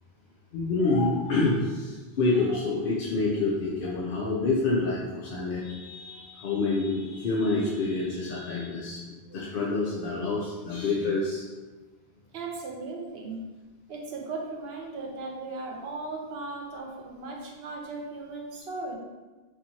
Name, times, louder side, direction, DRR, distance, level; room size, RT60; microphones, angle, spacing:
voice 1, 0.5-11.4, left 3 dB, 60° left, -5 dB, 0.7 m, -27 dB
voice 2, 12.3-13.4 13.9-19.0, right 3 dB, 70° right, 0 dB, 0.9 m, -37 dB
4.2 x 2.9 x 2.7 m, 1.2 s
omnidirectional pair, 1.1 m